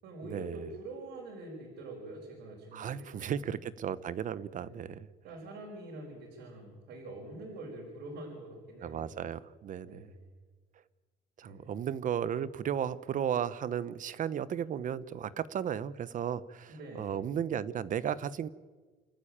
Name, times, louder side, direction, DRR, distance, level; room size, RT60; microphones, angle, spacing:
voice 1, 0.0-3.3 4.5-4.9 5.2-9.1 9.8-10.3 11.4-11.7 16.7-17.2, right 2 dB, 85° right, -1 dB, 5.5 m, -45 dB
voice 2, 2.7-5.1 8.8-10.1 11.4-18.5, right 9 dB, 50° right, 16 dB, 1.0 m, -35 dB
28.5 x 13.5 x 8.9 m, 1.4 s
cardioid pair, 110°, 17 cm